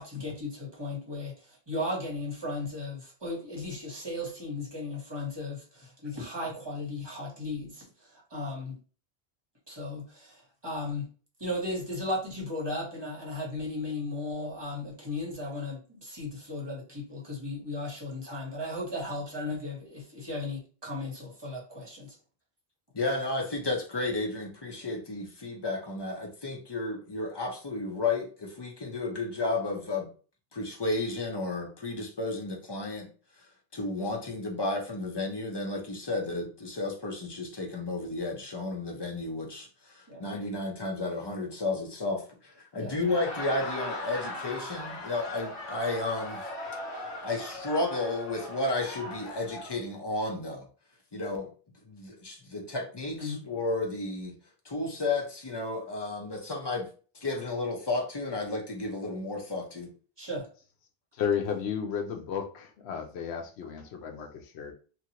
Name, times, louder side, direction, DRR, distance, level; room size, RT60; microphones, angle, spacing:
voice 1, 0.0-8.8 9.7-11.1 11.4-22.1 40.1-40.3 42.8-43.0 53.2-53.4 60.2-60.5, left 2 dB, 25° right, 1.1 m, -36 dB
voice 2, 22.9-30.1 30.5-33.1 33.7-46.4 47.2-50.6 51.1-51.5 51.9-54.3 54.6-56.9 57.1-59.9, left 2 dB, 30° left, 0.6 m, -32 dB
Laughter, 42.9-49.8, left 1 dB, 60° left, 1.1 m, -39 dB
voice 3, 61.1-64.7, left 7 dB, 80° left, 0.8 m, -33 dB
2.8 x 2.5 x 2.8 m
omnidirectional pair, 1.1 m